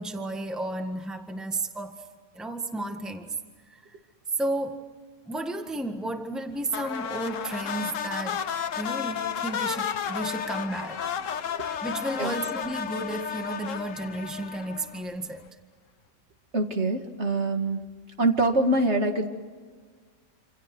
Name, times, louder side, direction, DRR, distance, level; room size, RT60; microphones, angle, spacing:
voice 1, 0.0-2.0 2.3-3.3 3.7-3.8 4.4-4.8 5.3-8.4 8.8-11.0 11.8-15.5, right 2 dB, ahead, 1.6 m, -33 dB
sound 1, 6.7-15.2, left 8 dB, 65° left, 1.3 m, -32 dB
voice 2, 16.5-17.9 18.2-19.3, right 2 dB, 50° right, 2.3 m, -24 dB
27.5 x 27.5 x 6.1 m
omnidirectional pair, 1.5 m